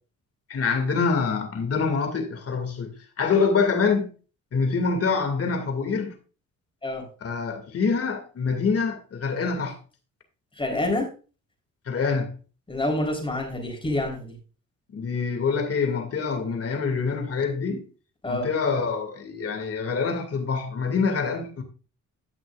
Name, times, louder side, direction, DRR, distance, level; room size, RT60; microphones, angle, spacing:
voice 1, 0.5-4.1 4.5-6.2 7.2-9.8 11.9-12.3 14.9-17.9 18.3-21.6, left 5 dB, 50° left, 2.3 m, -25 dB
voice 2, 10.6-11.1 12.7-14.4 18.2-18.5, left 1 dB, 15° left, 3.8 m, -27 dB
16.0 x 6.0 x 2.5 m
cardioid pair, 90°, 30 cm